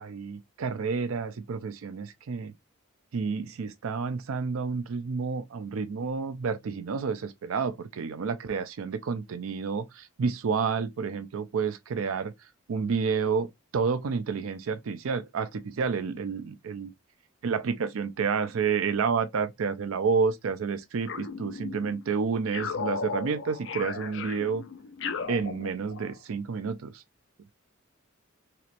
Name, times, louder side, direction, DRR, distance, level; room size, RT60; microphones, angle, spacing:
voice 1, 0.0-2.5 3.1-13.5 13.7-16.9 17.4-24.6 25.3-27.0, right 5 dB, 80° right, 0.4 m, -30 dB
sound 1, 21.1-22.0 22.5-26.2, left 5 dB, 60° left, 0.5 m, -36 dB
3.0 x 3.0 x 2.4 m
head